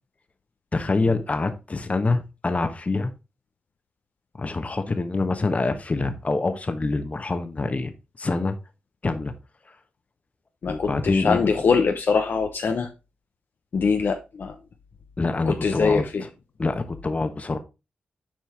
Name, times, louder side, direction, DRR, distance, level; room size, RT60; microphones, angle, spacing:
voice 1, 0.7-3.1 4.4-8.5 9.0-9.3 10.7-11.5 15.2-16.0 16.6-17.6, left 3 dB, 40° left, 1.2 m, -25 dB
voice 2, 10.6-12.9 13.7-14.6 15.4-16.3, left 5 dB, 65° left, 0.8 m, -23 dB
7.4 x 4.6 x 3.5 m
supercardioid pair, 45°, 4 cm